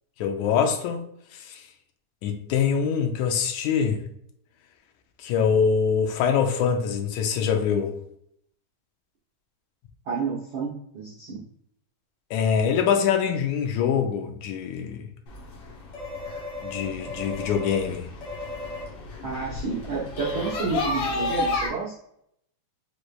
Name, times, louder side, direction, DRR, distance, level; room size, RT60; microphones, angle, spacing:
voice 1, 0.2-1.0 1.3-1.6 2.2-4.0 5.2-7.9 12.3-15.1 16.6-18.1, left 7 dB, 75° left, 1.9 m, -24 dB
voice 2, 10.0-11.4 19.2-21.9, right 5 dB, 75° right, 1.1 m, -30 dB
sound 1, 15.3-21.7, left 3 dB, 60° left, 1.7 m, -32 dB
6.2 x 3.3 x 2.4 m
omnidirectional pair, 3.8 m